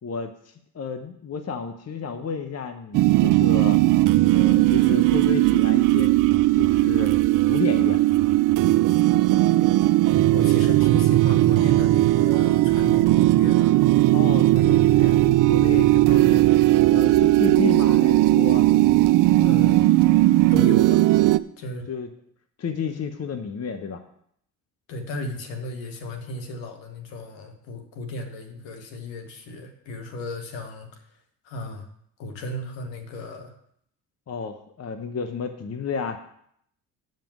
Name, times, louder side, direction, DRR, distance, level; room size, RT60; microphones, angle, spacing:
voice 1, 0.0-3.8 4.3-6.1 6.5-7.1 7.5-8.0 14.1-16.5 16.9-18.7 21.9-22.1 22.6-24.0 34.3-36.2, left 6 dB, 30° left, 7 dB, 1.0 m, -31 dB
sound 1, 2.9-21.4, right 16 dB, 45° right, 0.4 m, -18 dB
voice 2, 10.3-13.8 19.4-19.9 20.5-21.1 21.6-21.9 24.9-31.0 31.4-31.9 32.2-33.5, left 1 dB, 65° left, 4 dB, 1.7 m, -35 dB
7.4 x 5.3 x 7.4 m, 0.68 s
hypercardioid pair, 55°, 47 cm